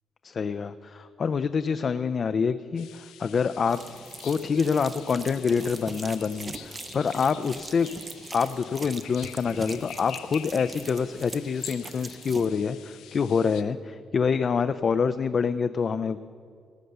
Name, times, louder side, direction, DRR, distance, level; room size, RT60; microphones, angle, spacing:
voice 1, 0.2-3.8 4.2-7.9 8.3-16.2, left 6 dB, 45° left, 10 dB, 0.4 m, -26 dB
sound 1, 2.8-13.6, left 10 dB, 90° left, 0.7 m, -46 dB
sound 2, 3.7-12.5, right 3 dB, 30° right, 0.6 m, -42 dB
18.0 x 6.7 x 6.7 m, 2.3 s
cardioid pair, 90°, 0 cm